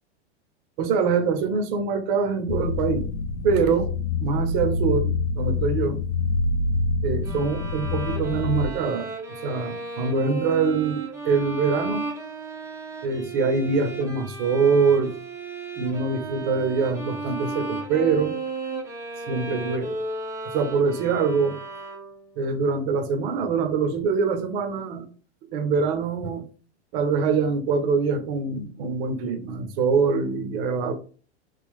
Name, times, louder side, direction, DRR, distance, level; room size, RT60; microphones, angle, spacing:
voice 1, 0.8-3.1 3.4-3.9 4.2-5.1 5.4-6.0 7.0-9.1 9.4-12.1 13.0-15.1 15.8-18.4 19.3-20.0 20.5-21.6 22.4-25.0 25.5-26.4 26.9-30.9, right 5 dB, 55° right, 6 dB, 0.8 m, -24 dB
sound 1, 2.5-8.7, left 4 dB, 40° left, 0.5 m, -26 dB
sound 2, 7.2-22.4, right 3 dB, 10° right, 0.6 m, -34 dB
3.4 x 2.3 x 3.6 m, 0.39 s
hypercardioid pair, 120°, 34 cm